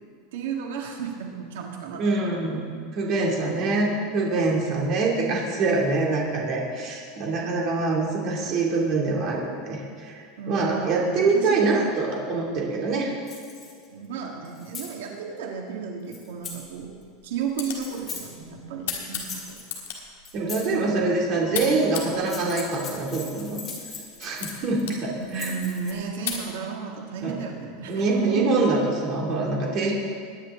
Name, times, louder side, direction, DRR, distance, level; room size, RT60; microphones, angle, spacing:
voice 1, 0.3-2.2 4.4-4.7 10.4-11.8 13.9-16.9 17.2-19.6 20.8-21.1 25.3-28.1 28.4-28.6, right 6 dB, 90° right, 1 dB, 1.9 m, -34 dB
voice 2, 2.0-10.2 10.5-13.1 20.3-23.6 24.2-25.5 27.2-27.3 27.9-29.9, right 3 dB, 35° right, -2 dB, 2.6 m, -24 dB
sound 1, 13.3-13.9 14.4-14.9 16.1-16.6 17.8-18.2 19.1-19.8 20.2-20.7 22.1-24.8 25.2-25.9, left 5 dB, 20° left, 2.3 m, -39 dB
sound 2, 16.4-26.5, left 7 dB, 80° left, 3.7 m, -39 dB
21.5 x 10.0 x 3.8 m, 2.2 s
supercardioid pair, 170°, 0 cm